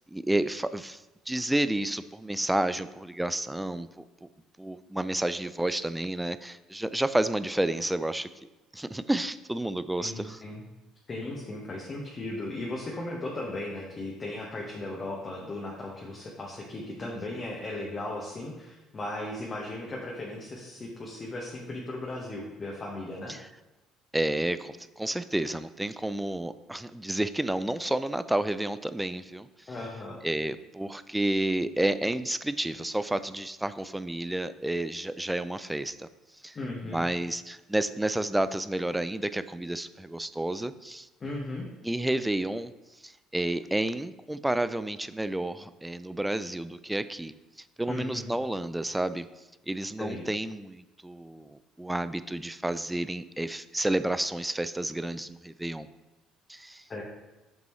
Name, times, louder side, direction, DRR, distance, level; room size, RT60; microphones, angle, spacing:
voice 1, 0.1-4.3 4.6-8.3 8.7-10.4 17.0-17.1 23.3-23.4 24.1-29.5 30.2-36.1 36.4-36.6 36.8-41.1 41.8-42.7 43.0-47.3 47.8-49.3 49.7-55.9 56.5-56.8, right 1 dB, 10° right, 13 dB, 0.4 m, -30 dB
voice 2, 10.0-10.6 11.1-23.3 29.7-30.2 36.5-37.0 41.2-41.6 47.9-48.3 50.0-50.3 56.9-57.0, left 2 dB, 35° left, -2 dB, 1.5 m, -36 dB
7.5 x 5.2 x 3.1 m, 1.0 s
hypercardioid pair, 55°, 0 cm